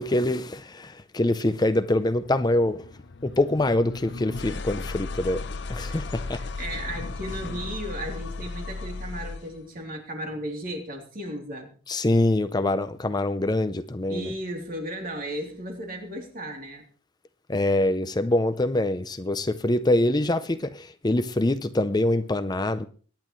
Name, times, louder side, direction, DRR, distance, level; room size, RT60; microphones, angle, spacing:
voice 1, 0.0-2.8 3.2-5.4 5.7-6.4 11.9-14.3 17.5-22.9, left 1 dB, 20° left, 0.6 m, -24 dB
sound 1, 1.7-9.6, left 3 dB, 60° left, 0.7 m, -36 dB
voice 2, 5.8-11.7 14.1-16.8, equal, 45° right, 3.3 m, -35 dB
24.0 x 10.5 x 3.2 m
head